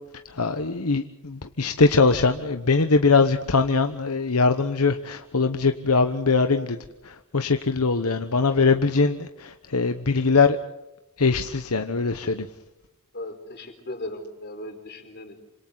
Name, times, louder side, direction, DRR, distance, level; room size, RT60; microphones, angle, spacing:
voice 1, 0.3-6.8 7.0-10.6 11.2-12.5, left 4 dB, 85° left, 7 dB, 1.1 m, -22 dB
voice 2, 13.1-15.4, left 1 dB, 50° left, 5 dB, 4.4 m, -37 dB
27.5 x 26.0 x 4.0 m, 0.99 s
head